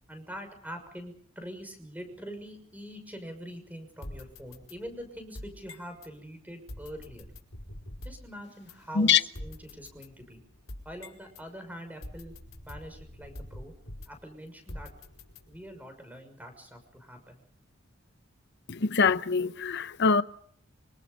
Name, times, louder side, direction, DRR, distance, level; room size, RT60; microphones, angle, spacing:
voice 1, 0.1-7.3 8.0-10.4 10.8-12.3 12.7-13.7 14.1-14.9 15.5-17.4, equal, 10° right, 6.2 m, -44 dB
sound 1, 4.0-6.1 6.7-8.3 8.7-8.8 9.3-11.5 12.0-14.3 14.7-15.8, left 1 dB, 85° left, 4.9 m, -45 dB
voice 2, 18.7-20.2, left 5 dB, 55° left, 0.9 m, -24 dB
26.0 x 26.0 x 5.3 m
head